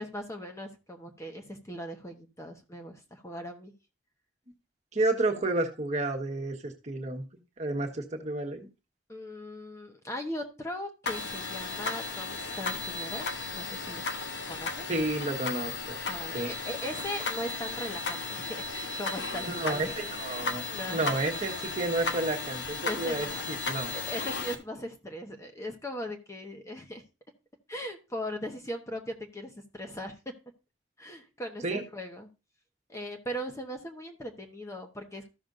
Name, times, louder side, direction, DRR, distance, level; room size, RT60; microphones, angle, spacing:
voice 1, 0.0-3.7 9.1-13.3 13.5-14.1 14.5-14.9 16.1-21.2 22.8-23.4 23.9-27.0 27.7-30.3 31.0-32.3 32.9-35.3, equal, 15° left, 3 dB, 1.0 m, -39 dB
voice 2, 4.9-7.2 7.6-8.7 14.9-16.0 16.3-16.5 19.4-20.6 20.9-23.9 31.6-31.8, right 2 dB, 40° right, 2 dB, 1.3 m, -31 dB
sound 1, 11.1-24.6, left 3 dB, 70° left, 1.0 m, -35 dB
14.0 x 6.1 x 2.6 m, 0.28 s
head